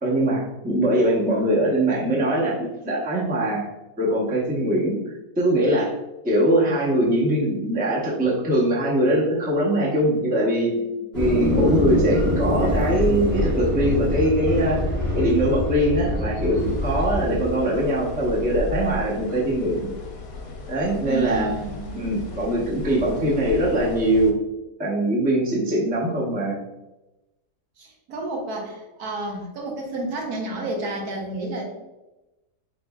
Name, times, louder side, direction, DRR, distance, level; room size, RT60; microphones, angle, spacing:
voice 1, 0.0-3.7 4.0-5.9 6.2-19.9 20.7-21.5 21.9-24.4 24.8-26.6, right 1 dB, 10° right, -5 dB, 0.5 m, -22 dB
sound 1, 11.1-17.5, equal, 40° right, 1.7 m, -24 dB
sound 2, 16.6-24.3, left 2 dB, 70° left, 1.0 m, -35 dB
voice 2, 21.0-22.0 27.8-31.6, right 2 dB, 75° right, 0 dB, 1.4 m, -30 dB
4.0 x 3.7 x 2.3 m, 1.0 s
omnidirectional pair, 1.7 m